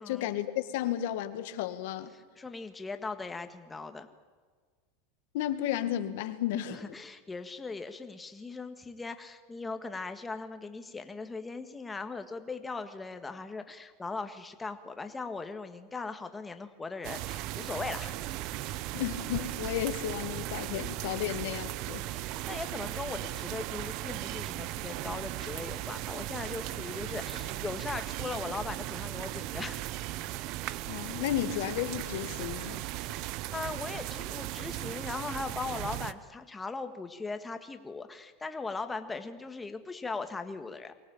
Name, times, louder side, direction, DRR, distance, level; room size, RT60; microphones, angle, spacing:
voice 1, 0.1-2.1 5.3-6.9 18.9-22.1 30.9-32.8, left 12 dB, 70° left, 10 dB, 1.8 m, -33 dB
voice 2, 2.4-4.1 6.7-18.1 21.2-21.4 22.1-30.0 32.9-33.2 33.5-40.9, left 3 dB, 10° left, 8 dB, 1.6 m, -39 dB
sound 1, 17.0-36.1, right 16 dB, 50° right, 0.7 m, -37 dB
23.5 x 18.0 x 8.9 m, 1.5 s
supercardioid pair, 140°, 0 cm